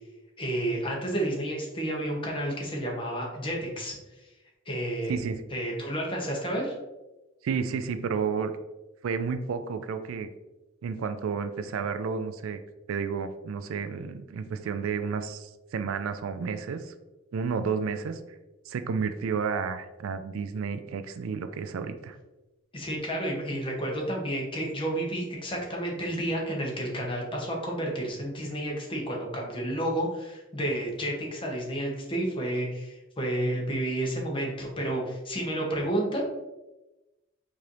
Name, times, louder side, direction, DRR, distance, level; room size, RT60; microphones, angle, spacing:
voice 1, 0.4-4.0 4.7-5.2 5.5-6.7 22.7-36.2, right 1 dB, 25° left, -1 dB, 0.8 m, -31 dB
voice 2, 5.1-5.4 7.4-8.5 9.0-10.3 10.8-12.6 12.9-16.9 17.3-18.2 18.7-22.2, right 5 dB, 80° right, 9 dB, 0.3 m, -31 dB
4.7 x 2.6 x 3.0 m, 1.0 s
head